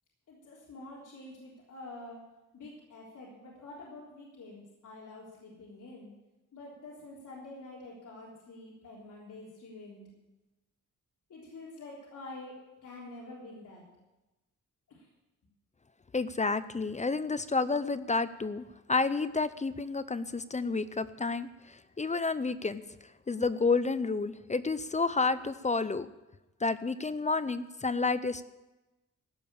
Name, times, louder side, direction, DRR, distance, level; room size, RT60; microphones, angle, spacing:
voice 1, 0.3-2.2 2.5-6.1 6.5-10.1 11.3-12.6 12.8-13.8 14.9-15.1, left 2 dB, 70° left, -6 dB, 3.7 m, -47 dB
voice 2, 16.1-22.8 23.3-26.1 26.6-28.4, left 4 dB, 25° left, 14 dB, 0.5 m, -30 dB
16.0 x 6.6 x 8.7 m, 1.0 s
wide cardioid pair, 115°, 31 cm